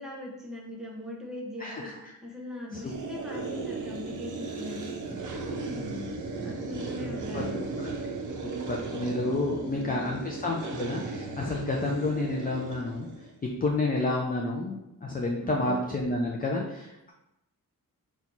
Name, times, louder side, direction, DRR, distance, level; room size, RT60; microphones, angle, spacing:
voice 1, 0.0-1.9 2.2-6.0 6.4-7.8 15.4-15.7, left 1 dB, ahead, -3 dB, 0.7 m, -41 dB
voice 2, 1.6-1.9 2.7-2.9 3.3-3.4 7.3-7.4 7.8-7.9 8.4-13.1 13.6-17.1, left 2 dB, 25° left, -1 dB, 0.4 m, -30 dB
sound 1, 2.9-13.3, right 3 dB, 60° right, 0.6 m, -36 dB
4.3 x 2.3 x 3.9 m, 0.91 s
wide cardioid pair, 165°, 34 cm